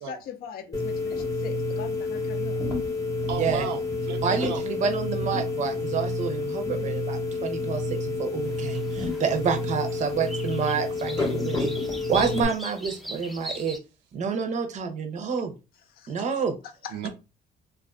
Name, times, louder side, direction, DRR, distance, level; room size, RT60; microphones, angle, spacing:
voice 1, 0.1-2.6 15.9-16.3 16.6-17.1, left 7 dB, 60° left, 0.5 m, -41 dB
sound 1, 0.7-12.4, left 2 dB, 20° left, 0.8 m, -29 dB
voice 2, 3.3-4.6 7.3-7.4 16.9-17.1, right 8 dB, 90° right, 0.5 m, -34 dB
voice 3, 4.2-11.7 12.1-13.8 14.1-15.5 16.1-16.5, right 6 dB, 45° right, 0.6 m, -28 dB
sound 2, 8.4-13.8, equal, ahead, 0.4 m, -41 dB
2.4 x 2.3 x 2.4 m
cardioid pair, 110°, 17 cm